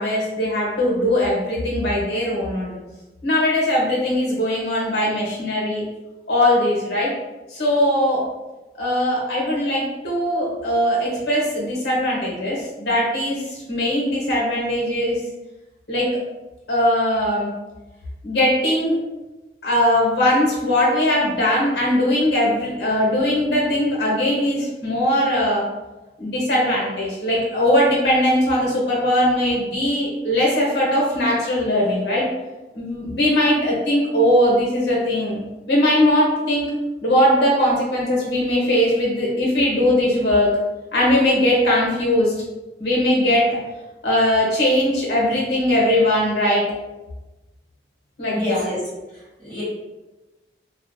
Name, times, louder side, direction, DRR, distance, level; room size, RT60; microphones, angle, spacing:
voice 1, 0.0-2.8 3.2-5.8 6.3-7.1 7.5-8.2 8.7-15.2 15.9-16.1 16.7-17.5 18.2-19.0 19.6-25.6 26.2-32.2 32.7-35.4 35.7-36.6 37.0-40.5 40.9-42.3 42.8-43.6 44.0-46.6 48.2-48.7, left 1 dB, 70° left, -4 dB, 0.9 m, -20 dB
voice 2, 48.3-48.8 49.1-49.6, left 1 dB, 5° left, -12 dB, 1.3 m, -28 dB
2.4 x 2.1 x 2.5 m, 1.1 s
head